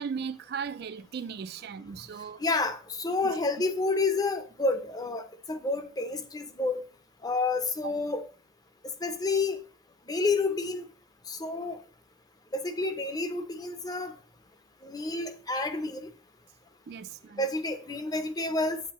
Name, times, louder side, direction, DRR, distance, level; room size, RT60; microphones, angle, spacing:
voice 1, 0.0-2.4 3.2-3.3 7.8-7.9 16.9-17.5, right 6 dB, 50° right, 0.3 m, -37 dB
voice 2, 2.4-6.8 7.2-8.3 9.0-9.6 10.1-10.8 11.3-11.8 12.5-14.1 14.8-16.1 17.4-18.8, left 3 dB, 20° left, 0.5 m, -29 dB
8.1 x 8.1 x 2.9 m
head